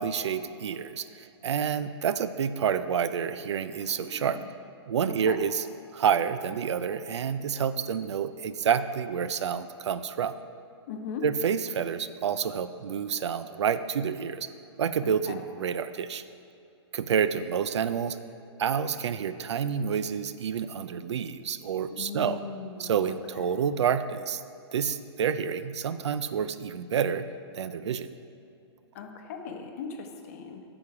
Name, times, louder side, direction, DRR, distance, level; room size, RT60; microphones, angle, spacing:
voice 1, 0.0-4.4 4.9-5.6 5.9-10.4 11.2-14.5 14.8-16.2 16.9-18.2 18.6-22.4 22.8-24.4 24.7-27.3 27.5-28.1, right 7 dB, 85° right, 13 dB, 0.5 m, -28 dB
voice 2, 3.8-4.5 5.1-5.4 10.9-11.2 15.0-15.4 22.0-23.6 28.9-30.6, left 6 dB, 35° left, 4 dB, 0.8 m, -40 dB
8.7 x 7.0 x 4.8 m, 2.6 s
hypercardioid pair, 165°, 14 cm